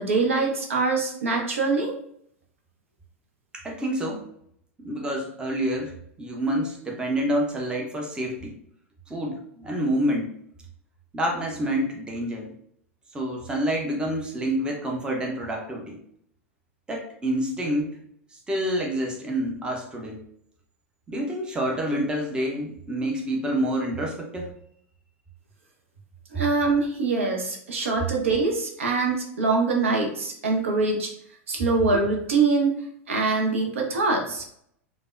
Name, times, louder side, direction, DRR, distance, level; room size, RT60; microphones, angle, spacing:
voice 1, 0.0-1.9 26.3-31.1 31.5-32.8 33.1-34.4, right 3 dB, 65° right, 1 dB, 0.6 m, -24 dB
voice 2, 3.5-4.3 4.8-5.9 6.2-8.6 9.1-10.3 11.1-12.5 13.1-16.0 16.9-18.0 18.5-20.2 21.1-24.5, right 1 dB, 10° right, 0 dB, 0.6 m, -28 dB
3.3 x 2.1 x 2.5 m, 0.68 s
figure-of-eight pair, 90°, 7 cm